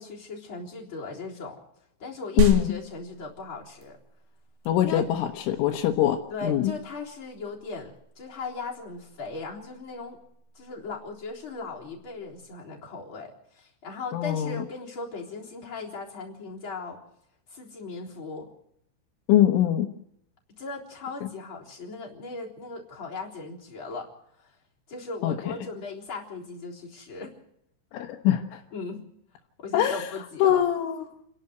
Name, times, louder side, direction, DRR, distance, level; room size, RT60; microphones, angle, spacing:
voice 1, 0.0-1.6 2.0-4.0 4.8-5.0 6.3-10.2 10.5-17.0 17.5-18.5 20.5-24.1 24.9-27.3 28.7-29.0 29.6-30.6, left 4 dB, 25° left, -3 dB, 3.9 m, -38 dB
voice 2, 2.4-2.7 4.7-6.7 14.1-14.6 19.3-19.9 21.2-21.3 25.2-25.4 27.9-28.6 29.7-30.1 30.4-31.1, left 11 dB, 85° left, 1 dB, 3.7 m, -23 dB
sound 1, 2.4-12.4, right 2 dB, 85° right, 5.1 m, -36 dB
29.0 x 11.5 x 7.9 m, 0.74 s
omnidirectional pair, 5.6 m